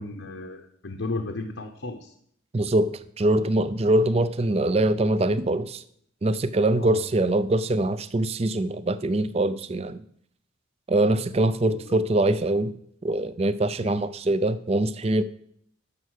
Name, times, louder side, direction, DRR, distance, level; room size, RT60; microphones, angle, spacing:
voice 1, 0.0-2.1 6.8-7.0 11.6-12.0 13.8-14.0, left 2 dB, 80° left, 3 dB, 1.0 m, -34 dB
voice 2, 2.5-5.8 6.2-10.0 10.9-12.8 13.0-15.2, right 1 dB, 30° right, 15 dB, 0.4 m, -23 dB
11.0 x 6.5 x 6.4 m, 0.68 s
head